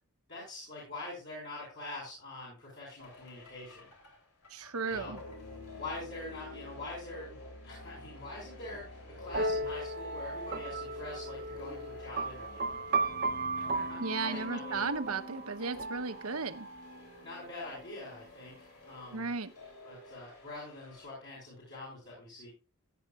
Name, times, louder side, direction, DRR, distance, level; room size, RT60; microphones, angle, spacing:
voice 1, 0.3-3.9 4.8-5.2 5.8-7.4 7.6-12.6 13.7-14.8 17.2-18.5 18.8-19.3 19.8-22.5, left 2 dB, 55° left, 5.7 m, -44 dB
sound 1, 3.0-21.1, left 2 dB, 90° left, 3.5 m, -49 dB
voice 2, 4.5-5.2 14.0-16.7 19.1-19.5, right 4 dB, 75° right, 1.1 m, -35 dB
sound 2, 9.3-16.9, right 3 dB, 45° right, 0.9 m, -36 dB
16.5 x 8.8 x 2.5 m
head